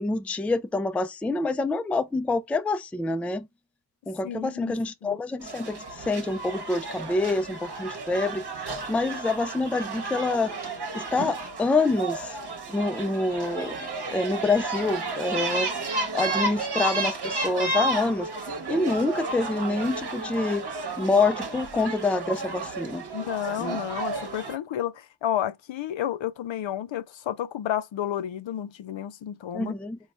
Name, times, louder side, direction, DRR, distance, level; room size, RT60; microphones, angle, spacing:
voice 1, 0.0-3.5 4.1-10.5 10.9-12.4 12.7-13.8 14.1-15.7 16.1-18.3 18.7-20.7 21.0-23.0 23.6-23.8 29.5-30.0, left 3 dB, 5° left, 0.3 m, -26 dB
voice 2, 4.2-4.8 5.0-5.2 23.1-29.7, left 11 dB, 65° left, 0.5 m, -31 dB
sound 1, 5.4-24.6, right 3 dB, 50° right, 1.1 m, -32 dB
4.0 x 2.3 x 3.2 m
cardioid pair, 55°, 50 cm